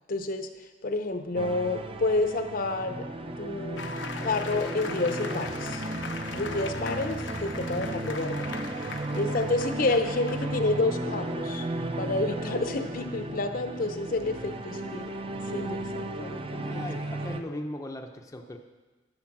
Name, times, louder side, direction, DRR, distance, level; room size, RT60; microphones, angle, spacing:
voice 1, 0.1-0.5 0.8-3.1 3.4-5.8 6.3-8.5 9.1-11.7 12.0-15.1 15.5-16.8, left 2 dB, 50° left, 7 dB, 0.7 m, -29 dB
sound 1, 1.4-17.4, right 2 dB, 30° right, 0.6 m, -34 dB
sound 2, 3.8-10.9, left 5 dB, 90° left, 0.8 m, -40 dB
voice 2, 16.7-18.6, left 1 dB, 20° left, 3 dB, 0.6 m, -38 dB
11.5 x 6.8 x 6.0 m, 1.2 s
head